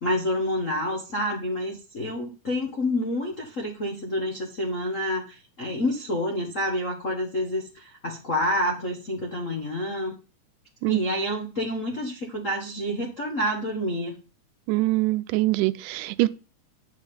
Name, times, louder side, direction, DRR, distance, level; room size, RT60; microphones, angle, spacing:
voice 1, 0.0-10.1 10.8-14.1, left 1 dB, 80° left, 0.7 m, -28 dB
voice 2, 14.7-16.3, right 19 dB, 80° right, 2.1 m, -23 dB
8.0 x 5.7 x 5.4 m
omnidirectional pair, 3.7 m